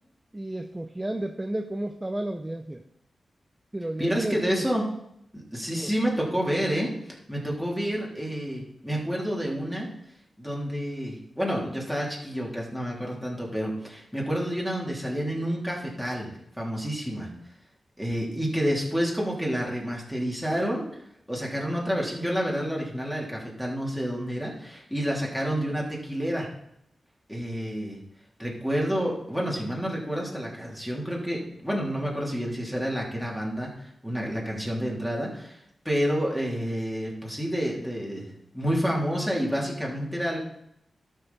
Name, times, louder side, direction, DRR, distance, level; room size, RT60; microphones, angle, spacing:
voice 1, 0.3-2.8 3.7-4.6 5.7-5.9, right 1 dB, 15° right, 5 dB, 0.7 m, -32 dB
voice 2, 4.0-4.9 5.3-9.9 10.4-17.3 18.0-20.8 21.3-26.5 27.3-28.0 28.4-40.4, equal, 5° left, -3 dB, 3.3 m, -29 dB
12.0 x 6.7 x 4.2 m, 0.77 s
cardioid pair, 65°, 0 cm